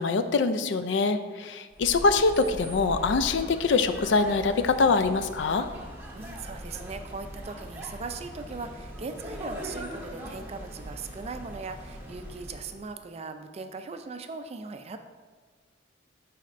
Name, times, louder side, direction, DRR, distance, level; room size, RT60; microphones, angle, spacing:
voice 1, 0.0-5.7, left 4 dB, 65° left, 10 dB, 0.4 m, -24 dB
sound 1, 1.7-12.8, equal, 10° right, 0.9 m, -41 dB
voice 2, 6.1-15.0, right 4 dB, 35° right, 8 dB, 0.4 m, -39 dB
10.5 x 4.2 x 2.5 m, 1.5 s
head